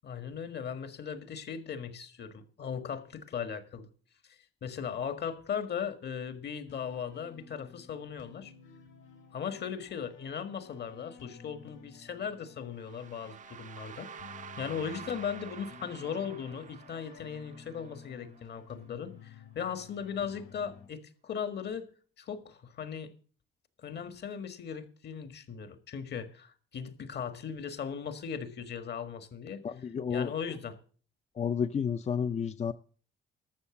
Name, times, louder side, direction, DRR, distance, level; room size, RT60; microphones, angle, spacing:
voice 1, 0.0-3.9 4.3-8.5 9.3-14.1 14.6-21.9 22.2-23.1 23.8-29.7 30.1-30.8, left 7 dB, 55° left, 1.7 m, -38 dB
sound 1, 6.7-20.9, left 6 dB, 85° left, 4.2 m, -53 dB
sound 2, 12.8-18.7, right 8 dB, 40° right, 0.5 m, -49 dB
voice 2, 29.6-30.3 31.4-32.7, left 7 dB, 35° left, 0.5 m, -31 dB
13.0 x 7.0 x 7.1 m
cardioid pair, 90°, 20 cm